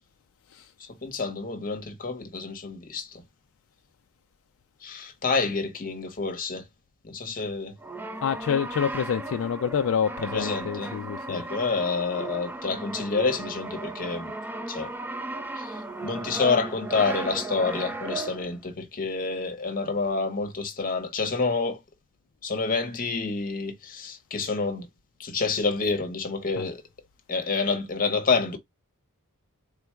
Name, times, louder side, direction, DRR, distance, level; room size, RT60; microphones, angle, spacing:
voice 1, 0.8-3.2 4.8-6.7 7.0-7.7 10.2-10.9 11.3-14.3 14.7-14.9 15.5-21.8 22.4-24.9 25.2-26.8 27.3-28.6, left 4 dB, 40° left, 0.9 m, -28 dB
Brass instrument, 7.8-18.6, right 2 dB, 10° right, 0.4 m, -36 dB
voice 2, 8.2-11.4 26.6-26.7, left 7 dB, 60° left, 0.3 m, -27 dB
3.8 x 2.3 x 4.3 m
head